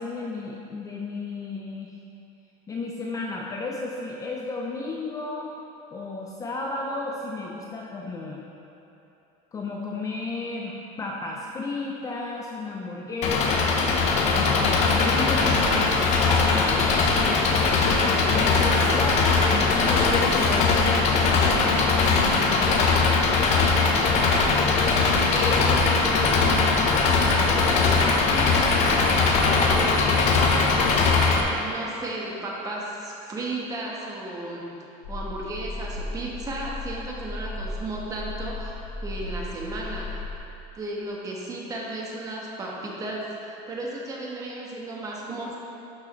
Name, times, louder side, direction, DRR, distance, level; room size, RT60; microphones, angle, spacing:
voice 1, 0.0-1.9 2.7-5.6 5.9-8.5 9.5-16.8 17.4-22.8, left 3 dB, 20° left, -2 dB, 0.5 m, -33 dB
Engine, 13.2-31.4, left 4 dB, 40° left, 0.8 m, -20 dB
voice 2, 25.1-26.8 27.3-29.0 29.6-30.6 31.6-34.6 35.1-40.2 40.7-45.6, right 2 dB, 20° right, -3 dB, 1.2 m, -34 dB
sound 1, 35.0-40.4, left 2 dB, 75° left, 1.6 m, -35 dB
11.5 x 6.5 x 3.1 m, 2.9 s
cardioid pair, 160°, 17 cm